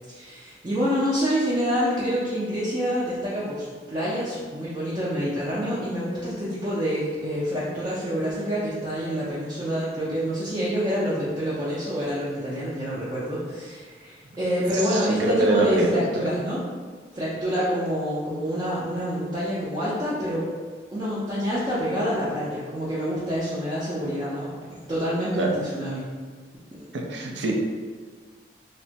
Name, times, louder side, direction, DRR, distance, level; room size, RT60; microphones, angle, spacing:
voice 1, 0.1-16.6 17.1-20.5 20.9-26.0 26.8-26.9, equal, 25° right, -9 dB, 0.4 m, -27 dB
voice 2, 14.7-16.3 25.4-25.6 26.9-27.5, right 2 dB, 90° right, 0 dB, 0.4 m, -24 dB
2.9 x 2.1 x 2.7 m, 1.5 s
head